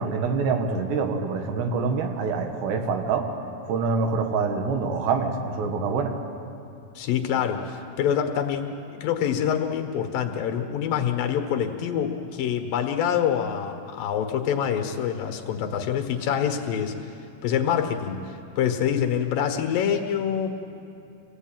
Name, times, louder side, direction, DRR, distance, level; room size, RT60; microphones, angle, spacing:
voice 1, 0.0-3.3 3.7-6.2, right 4 dB, 80° right, 5 dB, 3.7 m, -25 dB
voice 2, 7.0-17.1 17.4-20.6, left 8 dB, 65° left, 5 dB, 2.8 m, -26 dB
26.0 x 17.0 x 9.1 m, 2.6 s
omnidirectional pair, 4.8 m